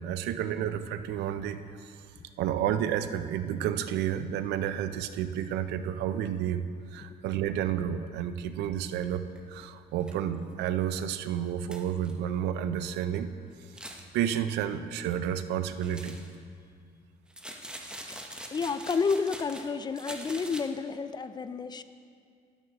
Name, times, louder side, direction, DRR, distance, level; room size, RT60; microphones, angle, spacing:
voice 1, 0.0-1.9 2.4-13.3 14.1-16.2, right 9 dB, 85° right, 11 dB, 0.5 m, -31 dB
sound 1, 9.4-9.5 10.0-10.1 10.5-10.6 11.0-11.1 11.7-12.1 13.6-14.1 15.8-16.4 17.3-19.7 19.9-20.6, right 1 dB, 5° right, 0.9 m, -43 dB
voice 2, 18.5-21.8, left 5 dB, 25° left, 12 dB, 0.4 m, -30 dB
12.5 x 11.0 x 3.0 m, 2.3 s
cardioid pair, 110°, 17 cm